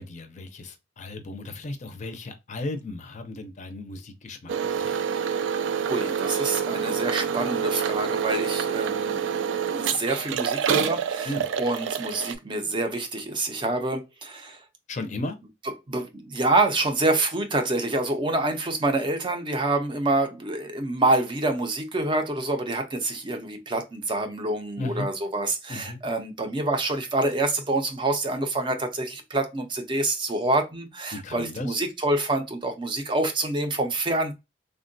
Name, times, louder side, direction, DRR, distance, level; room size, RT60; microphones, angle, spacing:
voice 1, 0.0-4.5 4.8-5.0 11.2-11.5 14.9-15.4 24.8-25.1 25.7-26.0 31.1-31.7, left 2 dB, 40° left, 0.5 m, -35 dB
sound 1, 4.5-12.3, right 7 dB, 85° right, 0.3 m, -27 dB
voice 2, 5.9-14.6 15.9-34.3, right 2 dB, 25° right, 0.5 m, -27 dB
3.5 x 2.2 x 2.5 m
head